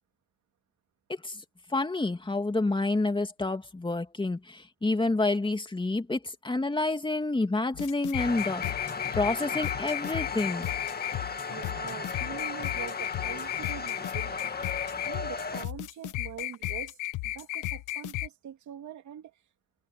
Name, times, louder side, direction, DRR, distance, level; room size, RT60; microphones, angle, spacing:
voice 1, 1.7-8.6 9.1-10.7, left 2 dB, 15° left, 2.6 m, -28 dB
sound 1, 7.7-18.3, left 16 dB, 85° left, 1.1 m, -34 dB
sound 2, 8.2-15.7, left 5 dB, 30° left, 2.1 m, -36 dB
voice 2, 11.4-14.7 15.0-17.0 17.2-19.3, right 10 dB, 70° right, 3.0 m, -43 dB
cardioid pair, 90°, 30 cm